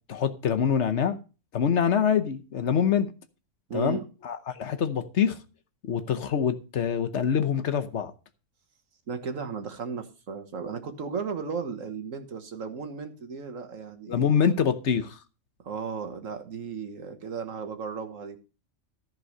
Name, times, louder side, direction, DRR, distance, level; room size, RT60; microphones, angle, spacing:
voice 1, 0.1-1.2 1.5-3.1 3.7-4.0 4.2-5.4 5.8-8.1 14.1-15.2, left 7 dB, 65° left, 1.2 m, -25 dB
voice 2, 3.7-4.0 9.1-14.3 15.6-18.4, right 5 dB, 85° right, 1.8 m, -35 dB
14.0 x 4.7 x 6.5 m
omnidirectional pair, 1.3 m